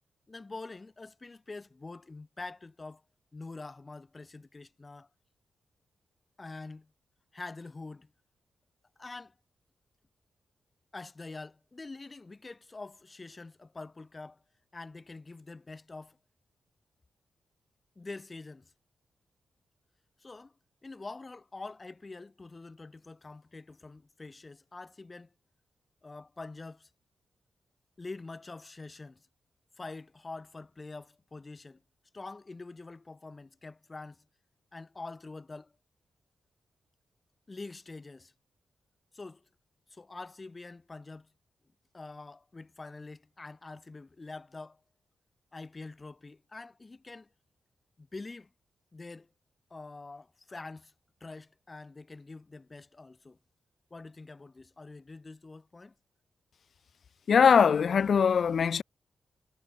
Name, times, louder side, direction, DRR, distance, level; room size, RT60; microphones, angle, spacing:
voice 1, 0.3-3.0 3.3-5.1 6.4-6.9 7.3-8.1 9.0-9.3 10.9-14.4 14.7-16.2 18.0-18.7 20.2-20.5 20.8-25.3 26.0-26.9 28.0-29.3 29.8-31.8 32.1-34.3 34.7-35.7 37.5-38.3 39.1-39.5 39.9-41.3 41.9-44.8 45.5-47.3 48.0-48.5 48.9-49.3 49.7-50.9 51.2-53.4 53.9-55.9, left 3 dB, 30° left, 4.2 m, -45 dB
voice 2, 57.3-58.8, left 6 dB, 60° left, 0.7 m, -22 dB
cardioid pair, 105°, 0 cm